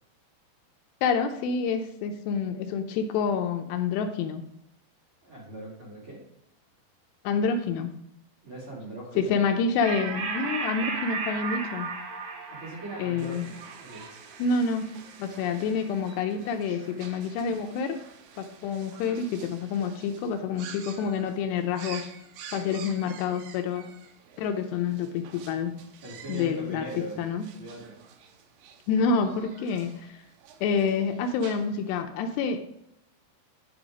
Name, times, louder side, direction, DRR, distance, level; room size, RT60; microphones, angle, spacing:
voice 1, 1.0-4.4 7.2-7.9 9.2-11.9 13.0-13.5 14.4-14.8 15.2-18.0 18.4-22.0 22.5-23.9 24.4-25.7 26.3-27.5 28.9-30.2 30.6-32.6, left 5 dB, 80° left, 5 dB, 2.8 m, -28 dB
voice 2, 5.2-6.2 8.4-9.4 12.5-14.1 26.0-28.0, right 1 dB, 35° right, -5 dB, 2.9 m, -40 dB
sound 1, 9.8-16.7, right 4 dB, 60° right, 2.8 m, -36 dB
sound 2, 13.2-32.0, right 7 dB, 80° right, 3.3 m, -49 dB
11.5 x 5.4 x 5.0 m, 0.79 s
omnidirectional pair, 5.1 m